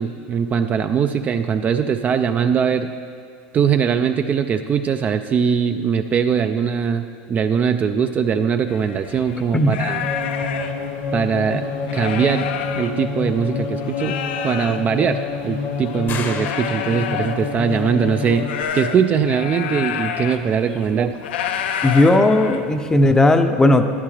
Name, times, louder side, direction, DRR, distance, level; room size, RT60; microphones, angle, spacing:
voice 1, 0.0-2.9 3.5-10.0 11.1-12.5 12.8-14.2 14.4-21.1, right 7 dB, 30° right, 8 dB, 0.3 m, -21 dB
sound 1, 8.7-13.5 13.8-23.0, left 8 dB, 85° left, 0.6 m, -30 dB
sound 2, 10.0-18.6, left 4 dB, 65° left, 1.2 m, -28 dB
sound 3, 16.1-17.6, left 6 dB, 40° left, 0.8 m, -33 dB
voice 2, 21.8-23.9, left 1 dB, 10° left, 7 dB, 0.6 m, -15 dB
12.0 x 10.0 x 3.2 m, 2.2 s
supercardioid pair, 120°, 5 cm